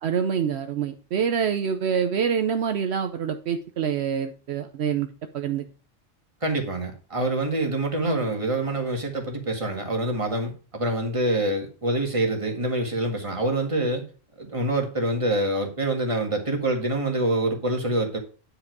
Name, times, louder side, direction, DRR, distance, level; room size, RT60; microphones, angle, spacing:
voice 1, 0.0-5.1 5.3-5.6, right 7 dB, 70° right, 7 dB, 0.9 m, -26 dB
voice 2, 6.4-14.0 14.4-18.2, right 1 dB, 30° right, 2 dB, 1.9 m, -26 dB
10.0 x 4.9 x 4.6 m, 0.38 s
omnidirectional pair, 1.2 m